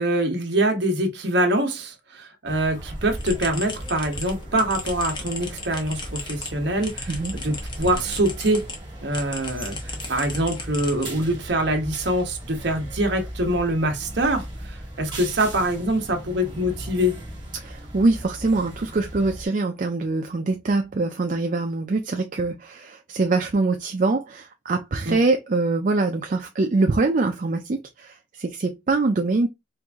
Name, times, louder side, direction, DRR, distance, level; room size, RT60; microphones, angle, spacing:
voice 1, 0.0-8.7 9.0-17.2 25.1-25.2, right 1 dB, 60° right, 1.2 m, -24 dB
sound 1, 2.4-19.5, right 1 dB, 25° right, 2.0 m, -37 dB
sound 2, 3.2-8.8 9.1-11.5, left 3 dB, 25° left, 0.9 m, -37 dB
voice 2, 17.5-29.5, right 3 dB, 40° right, 0.4 m, -24 dB
4.6 x 2.6 x 3.5 m
head